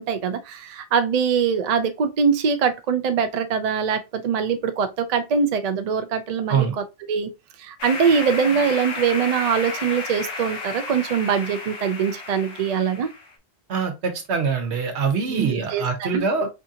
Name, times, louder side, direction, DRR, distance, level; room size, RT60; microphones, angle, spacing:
voice 1, 0.0-7.3 7.6-13.1 15.3-16.5, right 6 dB, 55° right, 0.5 m, -23 dB
sound 1, 7.8-13.3, left 3 dB, 85° left, 1.1 m, -32 dB
voice 2, 13.7-16.5, right 5 dB, 85° right, 1.2 m, -24 dB
4.4 x 2.4 x 2.7 m
omnidirectional pair, 1.1 m